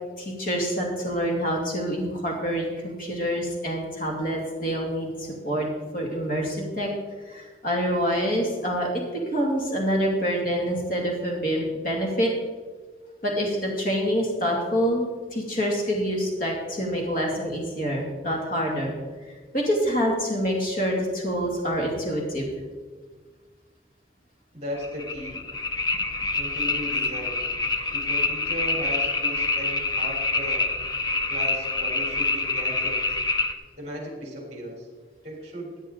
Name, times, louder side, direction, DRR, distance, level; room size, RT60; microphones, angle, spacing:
voice 1, 0.2-5.7 5.9-6.9 7.3-9.0 9.3-12.3 13.2-18.9 19.5-22.5, equal, 50° left, -1 dB, 2.3 m, -26 dB
voice 2, 24.5-25.4 26.3-27.5 27.9-30.7 31.3-33.2 33.8-34.9 35.2-35.8, equal, 40° right, -1 dB, 3.5 m, -36 dB
sound 1, 24.8-33.5, left 3 dB, 25° left, 0.6 m, -26 dB
14.0 x 9.0 x 3.8 m, 1.4 s
head